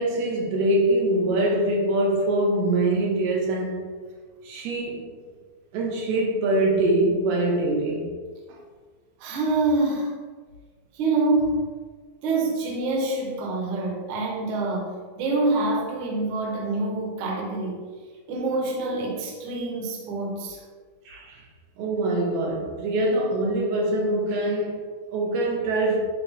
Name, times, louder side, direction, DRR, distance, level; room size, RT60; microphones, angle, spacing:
voice 1, 0.0-3.9 4.4-5.1 5.7-8.1 21.1-21.4 21.8-26.0, right 1 dB, 85° right, 3.4 m, -24 dB
voice 2, 9.2-10.1 10.9-11.6 12.2-14.9 15.2-17.8 18.3-20.6, right 2 dB, 65° right, 2.2 m, -26 dB
10.5 x 4.3 x 3.6 m
omnidirectional pair, 4.4 m